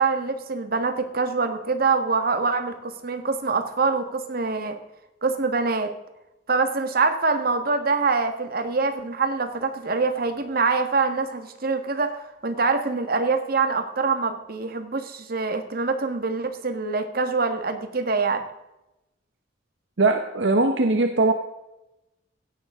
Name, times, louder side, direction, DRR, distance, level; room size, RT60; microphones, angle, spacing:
voice 1, 0.0-4.8 5.2-5.9 6.5-18.4, right 4 dB, 55° right, 7 dB, 1.6 m, -24 dB
voice 2, 20.0-21.3, right 2 dB, 70° right, 5 dB, 1.0 m, -20 dB
16.5 x 11.0 x 3.7 m, 0.93 s
head